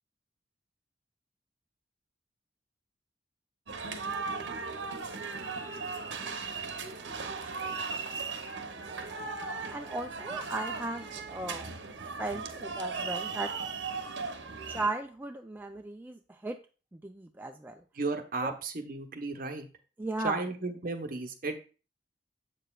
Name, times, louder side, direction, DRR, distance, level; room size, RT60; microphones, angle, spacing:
sound 1, 3.7-14.9, right 4 dB, 80° right, 0.8 m, -37 dB
voice 1, 9.7-11.7 12.2-13.5 14.7-16.6 16.9-17.8 18.4-18.6 20.0-20.4, right 2 dB, 10° right, 4 dB, 0.3 m, -36 dB
voice 2, 18.0-19.7 20.2-21.6, right 3 dB, 55° right, 5 dB, 1.0 m, -34 dB
7.6 x 6.6 x 2.3 m, 0.35 s
head